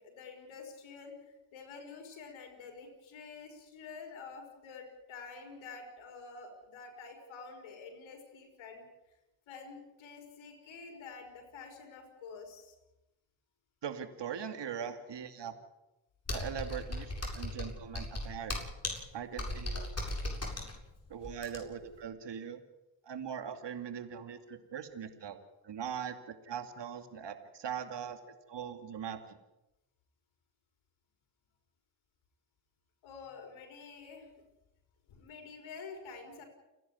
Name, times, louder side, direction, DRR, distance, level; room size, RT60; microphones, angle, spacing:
voice 1, 0.0-8.8 9.5-12.7 33.0-34.3 35.1-36.4, left 5 dB, 85° left, 3 dB, 4.6 m, -48 dB
voice 2, 13.8-15.5 16.3-18.6 19.1-19.8 21.1-22.6 23.0-25.4 25.6-28.2 28.5-29.4, right 8 dB, 65° right, 8 dB, 2.5 m, -41 dB
Computer keyboard, 16.3-21.9, left 1 dB, 35° left, 7.9 m, -37 dB
30.0 x 11.0 x 9.7 m, 0.94 s
supercardioid pair, 50°, 46 cm